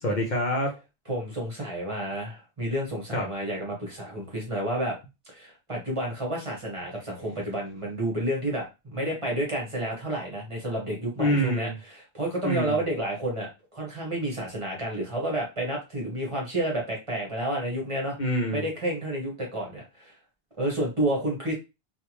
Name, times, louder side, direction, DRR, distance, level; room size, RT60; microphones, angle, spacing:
voice 1, 0.0-0.8 3.1-3.3 11.2-11.8 12.4-12.8 18.2-18.7, equal, 50° left, 0 dB, 0.8 m, -26 dB
voice 2, 1.1-5.0 5.3-18.2 18.5-20.1 20.6-21.5, right 1 dB, 30° right, -2 dB, 1.2 m, -30 dB
3.4 x 2.4 x 2.9 m, 0.26 s
omnidirectional pair, 1.0 m